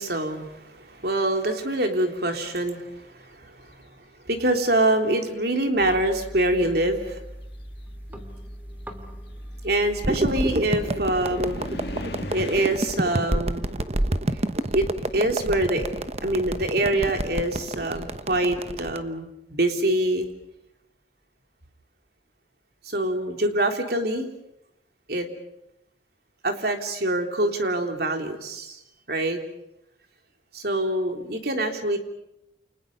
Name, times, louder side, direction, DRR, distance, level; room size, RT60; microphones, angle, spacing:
voice 1, 0.0-3.5 4.3-7.2 9.6-11.6 12.3-13.7 14.7-14.9 15.1-15.9 16.2-20.3 22.9-24.3 25.1-25.3 26.4-28.8 29.1-29.4 30.5-32.0, right 1 dB, 60° right, 4 dB, 3.5 m, -25 dB
sound 1, 3.3-3.9 4.9-5.0 5.5-15.4 15.7-18.4, left 1 dB, 60° left, 2.0 m, -43 dB
sound 2, 5.8-12.4, equal, 10° right, 2.6 m, -40 dB
sound 3, 10.0-19.0, right 1 dB, 35° right, 1.0 m, -28 dB
29.5 x 28.5 x 5.5 m, 0.84 s
head